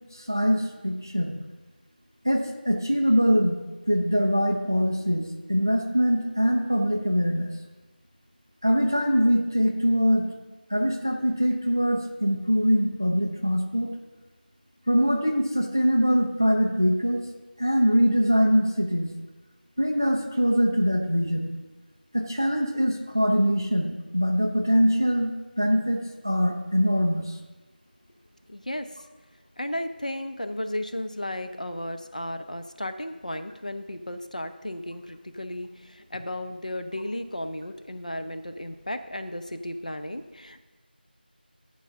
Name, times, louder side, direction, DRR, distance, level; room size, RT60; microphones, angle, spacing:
voice 1, 0.1-1.4 2.2-3.6 3.9-7.5 8.6-10.2 10.7-13.9 14.9-17.2 17.6-19.1 19.8-21.5 22.1-27.4, equal, 20° right, 3 dB, 0.5 m, -23 dB
voice 2, 28.5-28.9 29.6-40.6, left 1 dB, 45° left, 8 dB, 0.5 m, -34 dB
10.5 x 4.7 x 6.6 m, 1.2 s
figure-of-eight pair, 180°, 6 cm